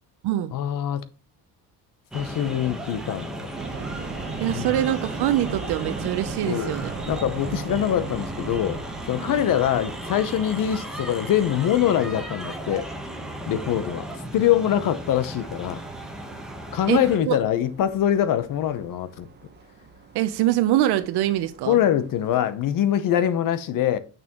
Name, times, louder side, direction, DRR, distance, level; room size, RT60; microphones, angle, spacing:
voice 1, 0.5-1.0 2.1-3.3 4.5-4.8 6.5-6.7 7.1-8.8 9.1-12.8 13.5-14.1 14.3-15.8 16.7-19.3 21.7-24.0, left 10 dB, 55° left, 0.8 m, -23 dB
sound 1, 2.1-17.2, right 1 dB, ahead, 1.1 m, -35 dB
sound 2, 3.6-22.4, right 4 dB, 25° right, 1.0 m, -40 dB
voice 2, 4.4-6.9 9.2-9.4 16.9-17.4 20.1-21.8, right 13 dB, 75° right, 0.7 m, -24 dB
6.8 x 6.1 x 2.9 m
cardioid pair, 170°, 40 cm